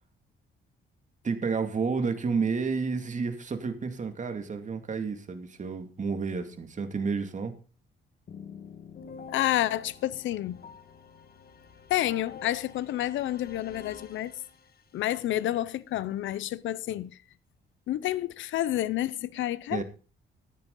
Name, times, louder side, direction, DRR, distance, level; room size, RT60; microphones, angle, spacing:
voice 1, 1.2-7.5 19.7-19.8, right 5 dB, 40° right, 2.3 m, -30 dB
sound 1, 8.3-15.0, left 6 dB, 50° left, 1.7 m, -47 dB
voice 2, 9.3-10.6 11.9-14.3 14.9-17.2 17.9-19.8, left 13 dB, 75° left, 0.7 m, -29 dB
14.0 x 10.0 x 3.9 m
cardioid pair, 90°, 20 cm